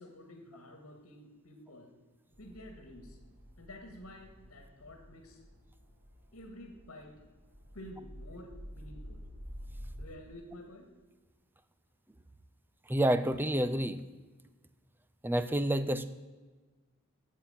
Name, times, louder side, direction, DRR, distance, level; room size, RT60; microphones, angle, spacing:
voice 1, 0.0-1.9 2.4-3.2 3.6-5.4 6.3-7.2 7.7-9.2 10.0-10.9, left 1 dB, 75° left, 3 dB, 1.8 m, -50 dB
sound 1, 2.3-10.1, equal, 55° right, 3.0 m, -50 dB
voice 2, 12.9-14.0 15.2-16.1, right 1 dB, 10° right, 13 dB, 0.5 m, -28 dB
9.3 x 7.5 x 8.9 m, 1.3 s
head